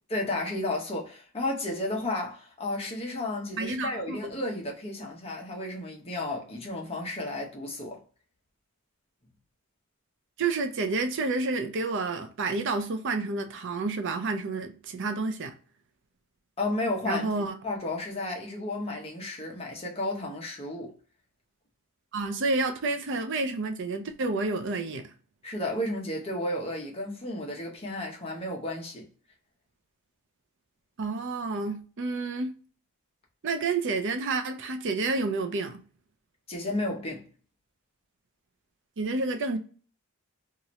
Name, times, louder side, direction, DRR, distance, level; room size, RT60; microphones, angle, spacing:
voice 1, 0.1-8.0 16.6-17.3 17.6-20.9 25.4-29.1 36.5-37.3, left 2 dB, 25° left, 0.8 m, -32 dB
voice 2, 3.6-4.3 10.4-15.5 17.1-17.6 22.1-25.1 31.0-32.5 33.4-35.8 39.0-39.6, right 3 dB, 55° right, 0.5 m, -29 dB
2.8 x 2.5 x 2.9 m
head